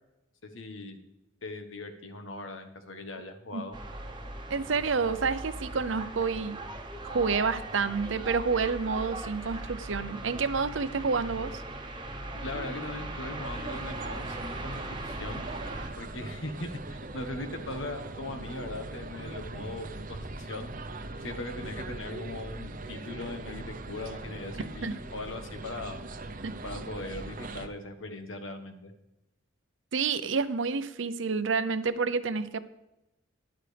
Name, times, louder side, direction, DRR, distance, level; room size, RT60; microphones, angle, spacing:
voice 1, 0.4-1.0 1.4-3.8 12.3-15.4 16.0-20.7 21.2-26.0 26.6-28.9, left 2 dB, 85° left, 6 dB, 1.5 m, -39 dB
sound 1, 3.7-15.9, right 2 dB, 25° right, 1.0 m, -39 dB
voice 2, 4.5-6.6 7.0-11.5 24.8-24.9 26.4-26.5 29.9-32.6, right 5 dB, 75° right, 13 dB, 0.7 m, -29 dB
sound 2, 13.4-27.7, right 2 dB, 45° right, 0.8 m, -41 dB
12.5 x 10.5 x 3.4 m, 0.93 s
head